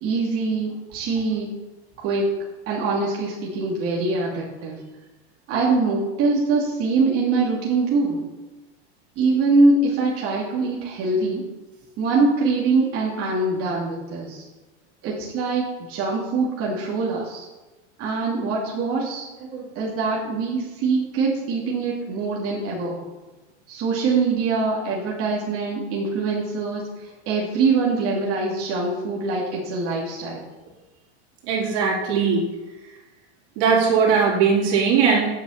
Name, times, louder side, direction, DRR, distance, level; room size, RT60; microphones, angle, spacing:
voice 1, 0.0-1.5 2.0-2.3 2.7-4.8 5.5-8.2 9.2-11.4 12.0-14.4 15.0-17.4 18.0-19.2 19.5-23.0 23.7-26.8 27.3-30.4, right 3 dB, 40° right, -5 dB, 2.9 m, -23 dB
voice 2, 31.5-32.4 33.6-35.3, right 6 dB, 65° right, -2 dB, 3.8 m, -19 dB
9.1 x 6.9 x 7.4 m, 1.2 s
supercardioid pair, 130°, 34 cm